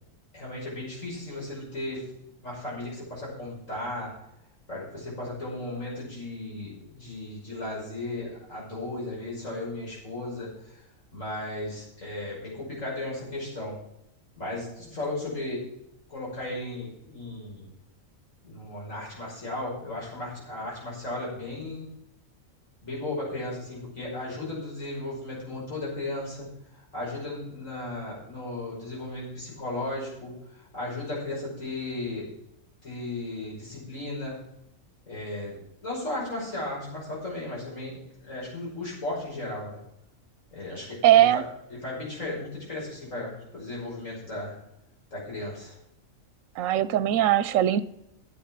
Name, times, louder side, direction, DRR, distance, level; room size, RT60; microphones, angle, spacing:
voice 1, 0.3-2.1 2.4-4.1 4.7-10.8 11.1-13.8 14.4-15.7 16.1-17.7 18.4-21.9 22.8-32.3 32.8-34.5 35.1-39.8 40.5-41.4 41.7-44.6 45.1-45.8, left 2 dB, 70° left, -5 dB, 6.2 m, -35 dB
voice 2, 41.0-41.4 46.6-47.8, right 12 dB, 75° right, 15 dB, 1.0 m, -20 dB
10.5 x 8.0 x 5.8 m, 0.80 s
omnidirectional pair, 1.4 m